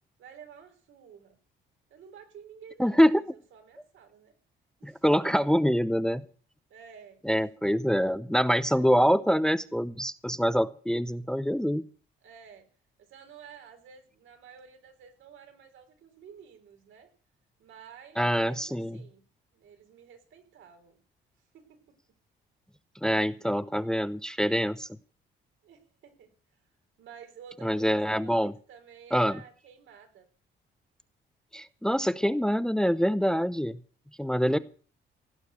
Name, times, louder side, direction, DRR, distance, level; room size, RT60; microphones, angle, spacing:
voice 1, 0.2-1.4 1.9-3.2 3.5-4.3 4.8-5.2 6.7-7.2 8.7-9.3 12.2-12.7 13.0-17.1 17.6-19.3 19.5-21.0 21.5-21.8 25.6-26.3 27.0-30.3, right 7 dB, 75° right, 6 dB, 3.9 m, -51 dB
voice 2, 2.8-3.2 4.8-6.3 7.2-11.8 18.2-19.0 23.0-24.9 27.6-28.5 29.1-29.4 31.5-33.8 34.2-34.6, equal, 5° left, 14 dB, 0.7 m, -25 dB
17.0 x 6.4 x 9.2 m, 0.41 s
cardioid pair, 90°, 20 cm